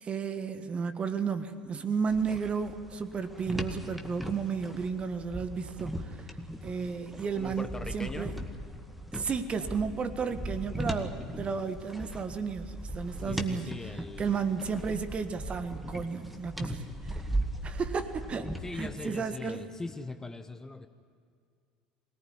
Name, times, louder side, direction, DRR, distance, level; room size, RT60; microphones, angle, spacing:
voice 1, 0.0-6.2 6.6-7.7 7.9-8.3 9.1-13.7 14.2-17.2 17.6-19.6, right 5 dB, 30° right, 10 dB, 1.6 m, -33 dB
sound 1, 2.1-19.1, right 1 dB, ahead, 2.0 m, -38 dB
voice 2, 7.3-8.3 13.2-14.6 18.6-20.9, left 3 dB, 15° left, 9 dB, 1.0 m, -41 dB
24.0 x 18.0 x 9.8 m, 2.3 s
figure-of-eight pair, 65°, 4 cm